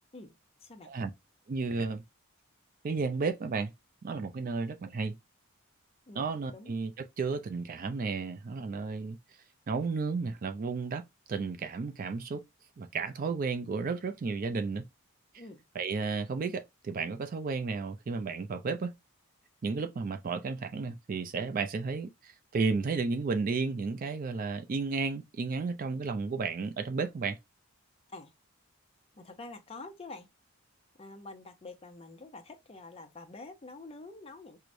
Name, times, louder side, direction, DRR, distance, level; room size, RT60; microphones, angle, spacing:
voice 1, 1.5-2.0 2.8-3.7 4.0-5.2 6.1-9.2 9.7-12.4 12.8-14.9 15.7-19.0 19.6-27.4, right 4 dB, 40° right, 0.3 m, -33 dB
voice 2, 6.1-6.8 15.4-15.6 28.1-28.3 29.2-30.3 31.0-34.6, left 3 dB, 25° left, 0.5 m, -47 dB
4.6 x 2.1 x 2.5 m
head